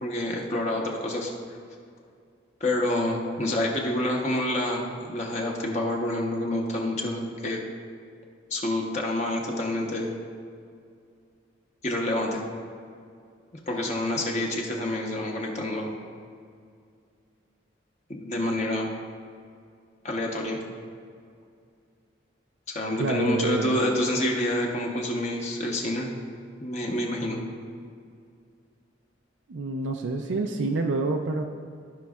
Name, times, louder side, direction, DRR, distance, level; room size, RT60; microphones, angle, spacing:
voice 1, 0.0-1.3 2.6-7.6 8.5-10.1 11.8-12.4 13.7-15.9 18.1-18.9 20.0-20.6 22.7-26.1 26.6-27.4, left 1 dB, 40° left, 0 dB, 0.9 m, -28 dB
voice 2, 23.0-23.8 29.5-31.4, right 3 dB, 85° right, 3 dB, 0.5 m, -27 dB
15.0 x 5.2 x 2.4 m, 2.3 s
head